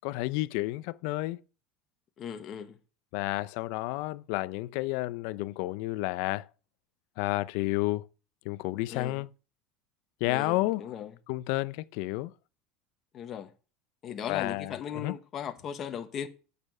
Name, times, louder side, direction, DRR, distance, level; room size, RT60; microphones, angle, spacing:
voice 1, 0.0-1.4 3.1-6.5 7.2-8.1 8.4-9.3 10.2-10.8 11.3-12.3 14.3-15.1, left 19 dB, 65° left, 0.5 m, -31 dB
voice 2, 2.2-2.8 8.9-9.2 10.2-11.1 13.1-13.5 14.0-16.3, left 8 dB, 35° left, 1.1 m, -38 dB
8.8 x 6.8 x 5.4 m
supercardioid pair, 135°, 0 cm